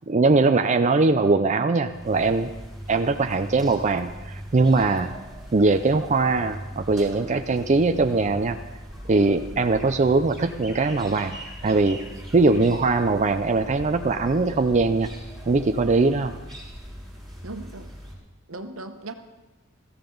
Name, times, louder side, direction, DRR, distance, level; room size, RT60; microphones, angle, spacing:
voice 1, 0.1-2.5 2.9-5.1 5.5-8.6 9.1-11.4 11.6-12.0 12.3-15.1 15.5-16.3, right 3 dB, 35° right, 6 dB, 0.5 m, -21 dB
sound 1, 1.8-18.1, equal, ahead, 6.4 m, -40 dB
voice 2, 17.4-17.9 18.5-19.1, right 2 dB, 70° right, 7 dB, 1.1 m, -37 dB
21.0 x 15.0 x 4.0 m, 1.2 s
head